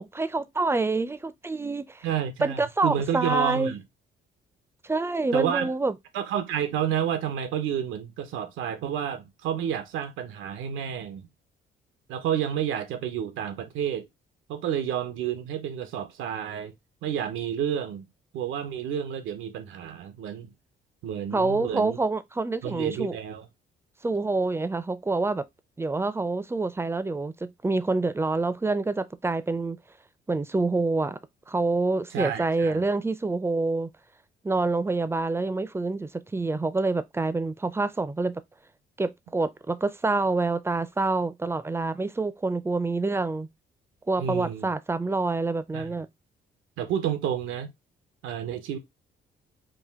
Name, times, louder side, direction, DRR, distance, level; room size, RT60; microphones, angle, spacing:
voice 1, 0.0-2.1 2.4-3.7 4.8-5.9 21.3-23.2 24.0-25.4 25.8-29.8 30.3-31.2 31.5-33.9 34.4-38.4 39.0-43.5 44.1-46.1, right 3 dB, 10° right, 0.5 m, -27 dB
voice 2, 2.0-3.8 5.3-5.7 6.1-11.3 12.1-14.1 14.5-16.7 17.0-18.1 18.3-20.5 21.0-22.0 22.6-23.5 32.1-32.8 44.2-44.7 45.7-45.9 46.8-47.7 48.2-48.8, right 9 dB, 90° right, 0.9 m, -30 dB
5.0 x 2.5 x 3.6 m
cardioid pair, 90°, 20 cm